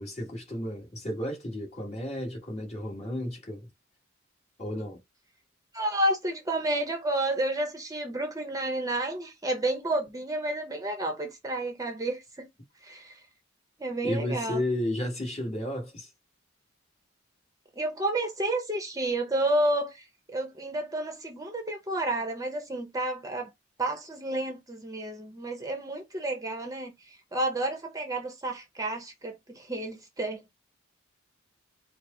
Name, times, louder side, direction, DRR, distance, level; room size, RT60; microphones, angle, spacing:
voice 1, 0.0-3.7 4.6-5.0 14.0-16.1, left 1 dB, 35° left, 1.7 m, -33 dB
voice 2, 5.7-12.5 12.8-13.1 13.8-14.6 17.8-23.5 23.8-30.5, right 1 dB, 20° right, 0.7 m, -31 dB
4.5 x 2.0 x 3.7 m
head